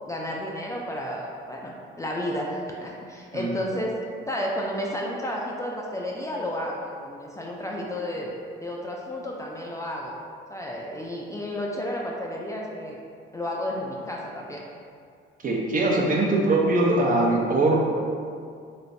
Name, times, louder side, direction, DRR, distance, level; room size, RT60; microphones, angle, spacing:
voice 1, 0.1-4.0 4.3-8.3 8.6-10.1 10.5-13.0 13.3-14.6, left 1 dB, 15° left, -2 dB, 0.3 m, -32 dB
voice 2, 15.4-17.8, right 2 dB, 45° right, -2 dB, 0.6 m, -21 dB
3.2 x 3.1 x 2.6 m, 2.3 s
cardioid pair, 90°, 20 cm